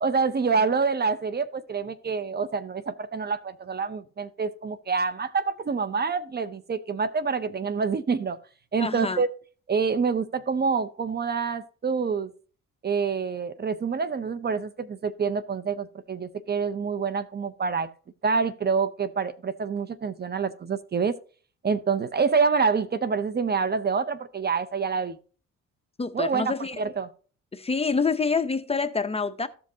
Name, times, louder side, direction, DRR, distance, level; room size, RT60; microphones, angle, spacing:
voice 1, 0.0-8.4 8.7-9.3 9.7-12.3 12.8-17.9 18.2-21.2 21.6-25.2 26.1-27.1, right 5 dB, 35° right, 0.6 m, -27 dB
voice 2, 8.8-9.2 26.0-26.8 27.5-29.5, left 4 dB, 20° left, 0.7 m, -27 dB
14.5 x 5.2 x 2.8 m
cardioid pair, 90°, 30 cm